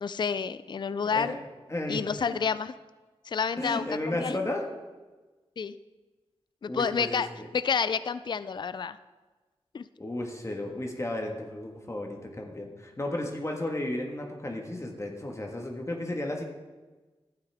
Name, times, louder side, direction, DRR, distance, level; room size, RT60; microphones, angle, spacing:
voice 1, 0.0-1.4 1.9-2.7 3.3-3.8 4.2-4.4 5.6-5.7 6.6-7.3 7.5-9.0 9.7-9.8, left 6 dB, 45° left, 14 dB, 0.3 m, -29 dB
voice 2, 1.1-1.4 1.7-2.0 3.6-4.7 6.7-7.5 10.0-16.4, left 1 dB, 25° left, 1 dB, 1.5 m, -33 dB
12.0 x 8.8 x 3.5 m, 1.2 s
cardioid pair, 65°, 11 cm